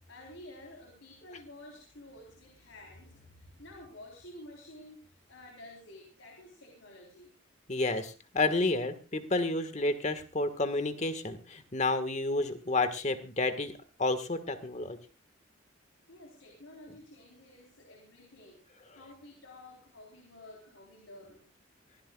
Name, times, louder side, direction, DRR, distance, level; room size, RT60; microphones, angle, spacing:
voice 1, 0.1-7.3 16.1-21.5, left 1 dB, 85° left, 1 dB, 3.9 m, -51 dB
voice 2, 7.7-13.7 14.0-15.0, left 2 dB, 35° left, 10 dB, 1.6 m, -30 dB
24.0 x 16.5 x 2.4 m, 0.30 s
head